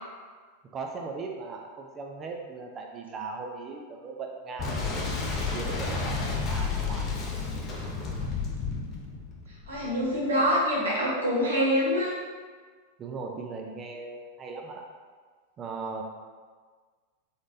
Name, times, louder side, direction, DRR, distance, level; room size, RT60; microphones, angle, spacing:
voice 1, 0.7-7.1 13.0-14.8 15.6-16.0, right 4 dB, 25° right, 1 dB, 0.4 m, -38 dB
Boom, 4.6-10.2, left 4 dB, 30° left, 0.6 m, -31 dB
voice 2, 9.7-12.1, equal, 70° right, -6 dB, 1.0 m, -25 dB
3.7 x 3.6 x 2.6 m, 1.5 s
figure-of-eight pair, 90°, 0 cm